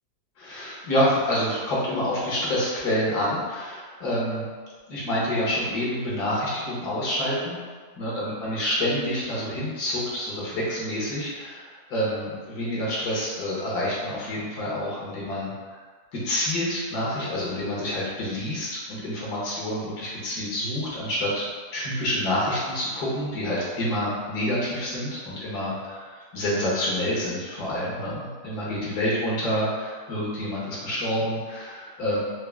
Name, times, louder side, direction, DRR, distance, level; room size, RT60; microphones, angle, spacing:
voice 1, 0.4-4.5 4.9-7.6 8.0-15.8 16.1-21.4 21.7-32.2, left 1 dB, 85° left, -6 dB, 1.7 m, -28 dB
4.6 x 2.1 x 3.5 m, 1.5 s
omnidirectional pair, 1.7 m